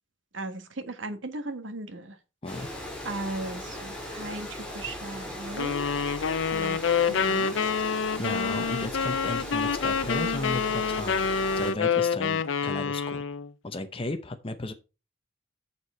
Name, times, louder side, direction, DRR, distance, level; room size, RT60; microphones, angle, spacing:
voice 1, 0.3-2.1 3.0-5.9 6.5-7.5, right 2 dB, 80° right, 1.5 m, -37 dB
Water, 2.5-11.7, left 1 dB, 5° left, 3.4 m, -38 dB
sound 1, 5.6-13.5, left 6 dB, 85° left, 0.6 m, -27 dB
voice 2, 8.2-11.3 11.5-13.2 13.6-14.7, left 2 dB, 30° left, 0.8 m, -34 dB
7.1 x 6.7 x 5.4 m
head